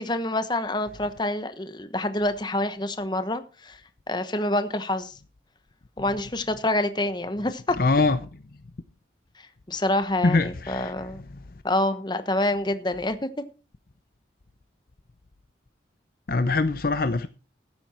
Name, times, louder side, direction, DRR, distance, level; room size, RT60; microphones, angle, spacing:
voice 1, 0.0-3.8 4.1-5.2 6.0-7.8 9.7-11.2 11.6-13.3, left 1 dB, 25° left, 1.0 m, -27 dB
voice 2, 7.8-8.2 10.2-10.9 16.3-17.3, left 3 dB, 50° left, 0.6 m, -22 dB
13.5 x 9.6 x 4.3 m
head